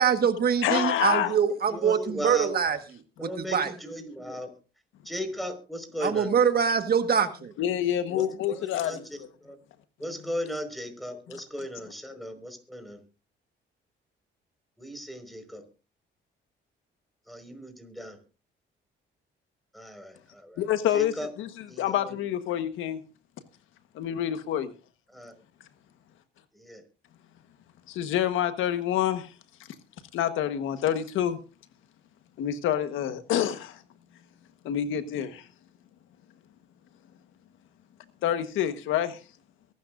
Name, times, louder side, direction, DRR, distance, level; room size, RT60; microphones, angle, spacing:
voice 1, 0.0-2.8 3.5-3.7 6.0-7.5, right 7 dB, 50° right, 8 dB, 1.6 m, -24 dB
voice 2, 0.6-1.3 7.6-9.3 11.3-11.4 20.6-23.0 23.9-24.7 27.9-29.3 30.1-31.4 32.4-33.8 34.6-35.4 38.2-39.2, left 10 dB, 90° left, 10 dB, 1.4 m, -27 dB
voice 3, 1.7-2.6 3.2-4.5 5.0-6.3 8.1-9.6 10.0-13.0 14.8-15.6 17.3-18.2 19.7-20.6 20.9-21.3 21.7-22.2 25.1-25.3 26.5-26.8, equal, ahead, 7 dB, 5.0 m, -37 dB
23.0 x 12.5 x 2.6 m, 0.32 s
cardioid pair, 90°, 20 cm